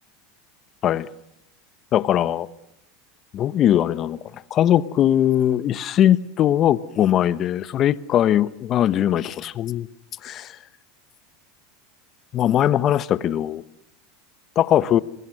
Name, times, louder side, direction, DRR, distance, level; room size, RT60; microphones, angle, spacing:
voice 1, 1.9-2.5 3.3-9.9 10.2-10.6 12.3-13.6 14.6-15.0, left 11 dB, 40° left, 1.0 m, -20 dB
27.5 x 22.0 x 6.5 m
supercardioid pair, 110°, 0 cm